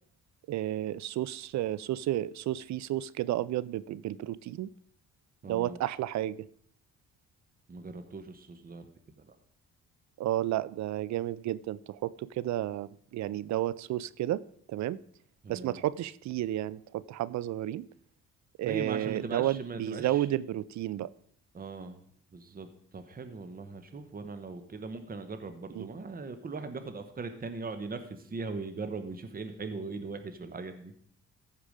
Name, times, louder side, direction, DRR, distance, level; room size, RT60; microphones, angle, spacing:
voice 1, 0.5-4.7 5.4-6.4 10.2-15.0 15.5-17.9 18.6-21.1 25.7-25.9, right 13 dB, 65° right, 19 dB, 0.5 m, -32 dB
voice 2, 5.4-5.8 7.7-8.9 9.3-9.4 15.4-15.8 18.7-20.3 21.5-22.0 22.3-22.7 22.9-30.9, right 4 dB, 30° right, 9 dB, 1.1 m, -39 dB
14.5 x 4.9 x 5.0 m, 0.62 s
cardioid pair, 90°, 30 cm